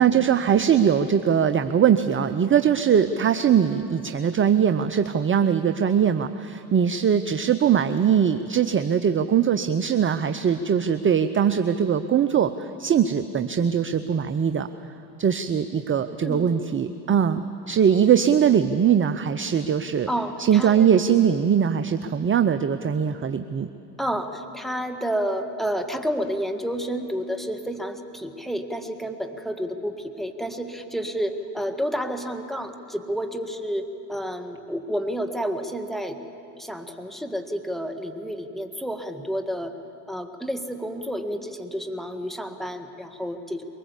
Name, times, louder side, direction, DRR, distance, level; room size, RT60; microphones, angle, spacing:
voice 1, 0.0-14.7 15.2-20.1 20.4-23.7, right 8 dB, 25° right, 11 dB, 0.7 m, -21 dB
voice 2, 20.1-20.9 24.0-36.2 36.6-39.8 40.1-43.6, equal, ahead, 6 dB, 1.8 m, -30 dB
23.0 x 19.5 x 8.3 m, 2.8 s
hypercardioid pair, 75°, 49 cm